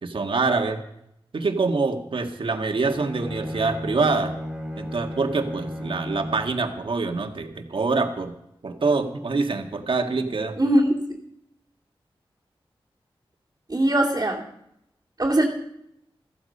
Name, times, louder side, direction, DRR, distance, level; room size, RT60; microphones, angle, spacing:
voice 1, 0.0-0.8 1.3-4.3 4.8-8.3 8.6-10.6, right 3 dB, 65° right, 4 dB, 1.8 m, -25 dB
Bowed string instrument, 2.8-6.6, equal, 5° right, 3.0 m, -34 dB
voice 2, 10.6-10.9 13.7-14.4 15.2-15.4, right 1 dB, 35° right, -4 dB, 2.6 m, -20 dB
15.0 x 14.5 x 5.4 m, 0.78 s
wide cardioid pair, 85°, 9 cm